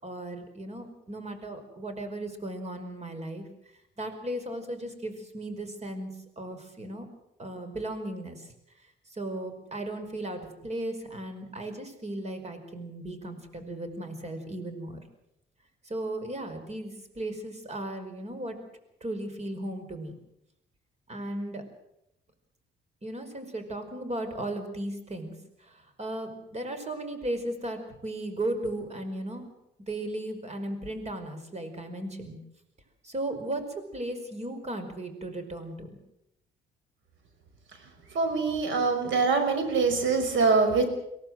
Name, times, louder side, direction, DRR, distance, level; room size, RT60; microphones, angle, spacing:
voice 1, 0.0-3.4 4.0-6.1 6.4-7.1 7.4-8.5 9.1-15.0 15.8-18.6 19.0-20.1 21.1-21.6 23.0-25.3 25.6-29.5 29.9-32.4 33.0-36.0, right 1 dB, 35° right, 8 dB, 5.2 m, -36 dB
voice 2, 38.1-40.9, right 4 dB, 75° right, 7 dB, 5.6 m, -24 dB
23.5 x 17.5 x 7.7 m, 0.83 s
cardioid pair, 90°, 20 cm